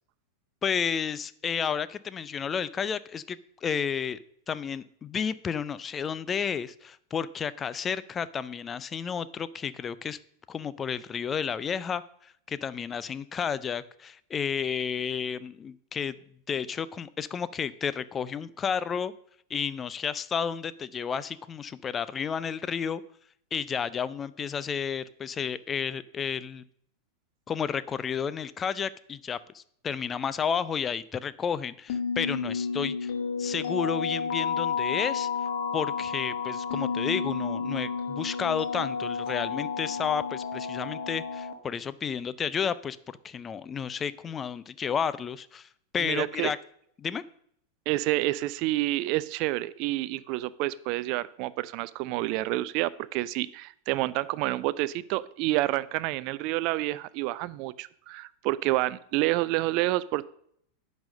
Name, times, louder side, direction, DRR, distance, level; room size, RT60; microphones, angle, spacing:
voice 1, 0.6-4.2 4.5-10.2 10.5-16.2 16.5-19.1 19.5-23.0 23.5-26.6 27.5-33.1 33.4-35.3 35.7-45.7 45.9-46.6 47.0-47.2, left 7 dB, 20° left, 17 dB, 0.4 m, -31 dB
sound 1, 31.9-41.5, left 5 dB, 50° left, 1.3 m, -31 dB
voice 2, 46.0-46.5 47.9-60.3, right 17 dB, 45° right, 18 dB, 0.4 m, -29 dB
10.0 x 4.2 x 6.4 m, 0.66 s
figure-of-eight pair, 90°, 0 cm